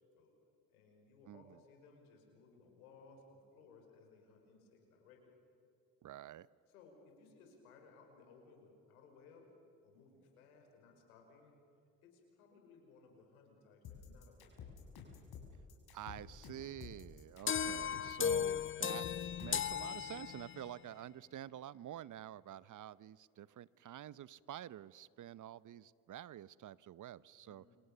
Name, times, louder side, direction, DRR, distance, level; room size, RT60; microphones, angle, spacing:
voice 1, 0.7-5.4 6.7-9.5 9.8-11.6 12.0-14.9 17.3-17.4 27.4-27.8, left 4 dB, 90° left, 2 dB, 5.5 m, -62 dB
voice 2, 1.3-1.6 6.0-6.5 15.9-19.1 19.4-27.6, right 11 dB, 45° right, 20 dB, 0.8 m, -49 dB
sound 1, 13.8-19.7, left 7 dB, 60° left, 6.7 m, -51 dB
sound 2, 17.5-20.8, left 8 dB, 30° left, 0.8 m, -36 dB
29.5 x 26.0 x 6.9 m, 2.8 s
hypercardioid pair, 60°, 42 cm